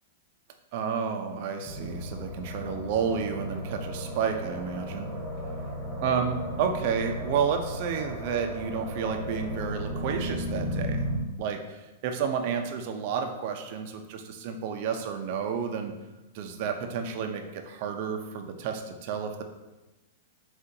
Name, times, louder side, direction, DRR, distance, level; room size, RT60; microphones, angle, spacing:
voice 1, 0.7-5.1 6.0-11.1 11.4-15.9 16.3-19.4, right 6 dB, 55° right, 5 dB, 0.6 m, -31 dB
sound 1, 1.7-11.2, equal, 5° right, 1.4 m, -35 dB
7.4 x 2.5 x 2.8 m, 1.1 s
hypercardioid pair, 120°, 0 cm